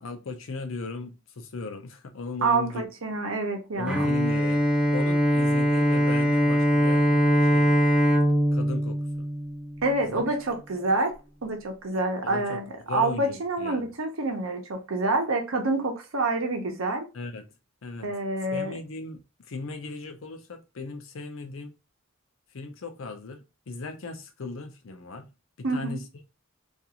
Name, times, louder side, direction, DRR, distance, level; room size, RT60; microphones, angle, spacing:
voice 1, 0.0-2.9 3.8-4.6 4.9-7.8 8.5-9.3 10.1-10.3 12.2-13.9 17.1-17.5 17.8-18.1 18.5-21.7 22.5-25.3 25.6-26.1, left 3 dB, 75° left, 0.6 m, -37 dB
voice 2, 2.4-4.1 9.8-11.2 11.4-12.6 12.9-17.1 18.0-18.7 25.6-26.0, right 2 dB, 75° right, 0.7 m, -27 dB
Bowed string instrument, 3.9-10.1, equal, 5° right, 0.3 m, -22 dB
2.5 x 2.4 x 2.8 m
head